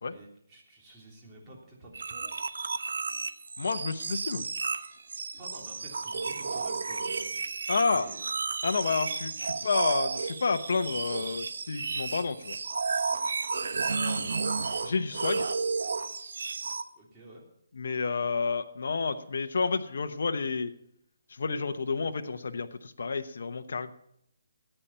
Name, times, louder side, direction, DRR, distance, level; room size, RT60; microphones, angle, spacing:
voice 1, 0.1-2.3 5.4-8.2 9.5-9.6 13.8-14.6 16.9-17.4, right 1 dB, 15° right, -3 dB, 3.2 m, -50 dB
sound 1, 1.9-16.8, right 4 dB, 70° right, 1.0 m, -32 dB
voice 2, 3.6-4.5 7.7-8.1 8.6-12.6 13.9-14.4 14.8-15.5 17.8-20.7 21.3-23.9, left 4 dB, 65° left, 7 dB, 0.9 m, -30 dB
14.5 x 9.0 x 5.6 m, 0.73 s
hypercardioid pair, 170°, 0 cm